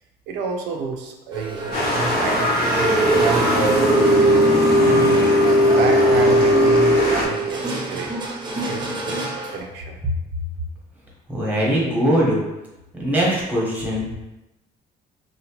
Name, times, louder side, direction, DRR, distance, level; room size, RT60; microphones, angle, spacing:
voice 1, 0.3-2.5 2.8-4.4 4.8-5.2 5.6-8.2 8.6-9.1 9.5-10.0, right 4 dB, 85° right, 2 dB, 0.4 m, -29 dB
sound 1, 1.3-9.6, right 1 dB, 25° right, 0.5 m, -20 dB
sound 2, 1.7-7.3, left 1 dB, 55° left, 0.8 m, -22 dB
voice 2, 11.3-12.4 12.9-14.1, equal, 10° right, -4 dB, 0.9 m, -21 dB
2.8 x 2.1 x 2.9 m, 0.98 s
cardioid pair, 110°, 17 cm